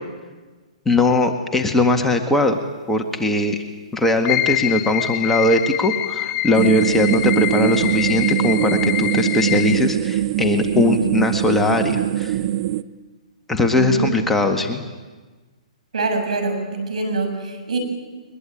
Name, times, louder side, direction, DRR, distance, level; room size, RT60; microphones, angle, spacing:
voice 1, 0.9-2.6 2.9-3.6 3.9-12.4 13.5-14.9, left 2 dB, 5° left, 4 dB, 1.9 m, -20 dB
sound 1, 4.2-9.8, left 15 dB, 35° left, 0.7 m, -25 dB
sound 2, 6.5-12.8, right 13 dB, 50° right, 0.8 m, -22 dB
voice 2, 13.7-14.1 15.9-17.8, right 3 dB, 80° right, 5 dB, 7.0 m, -24 dB
22.5 x 21.5 x 9.2 m, 1.3 s
hypercardioid pair, 130°, 4 cm